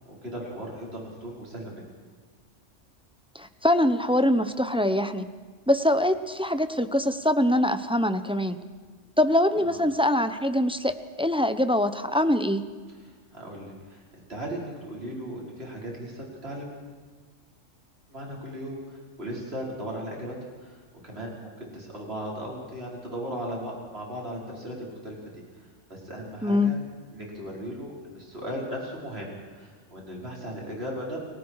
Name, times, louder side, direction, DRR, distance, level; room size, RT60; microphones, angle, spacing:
voice 1, 0.1-1.8 9.6-9.8 13.0-14.0 14.3-16.7 18.1-20.3 20.6-26.8 27.1-31.2, equal, 55° right, -2 dB, 5.7 m, -37 dB
voice 2, 3.3-5.3 5.7-8.6 9.2-12.6 26.4-26.7, left 1 dB, 5° right, 10 dB, 0.8 m, -23 dB
30.0 x 19.0 x 4.9 m, 1.5 s
omnidirectional pair, 1.3 m